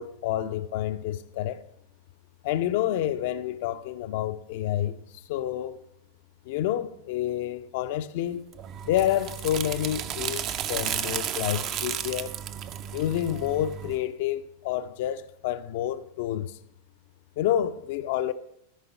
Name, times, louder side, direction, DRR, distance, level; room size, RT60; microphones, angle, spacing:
voice 1, 0.0-1.6 2.4-5.8 6.5-8.5 8.8-12.4 12.9-16.6 17.4-18.3, left 12 dB, 50° left, 0.4 m, -29 dB
sound 1, 8.5-14.0, right 9 dB, 35° right, 0.5 m, -33 dB
13.5 x 5.3 x 5.5 m
figure-of-eight pair, 90°, 0 cm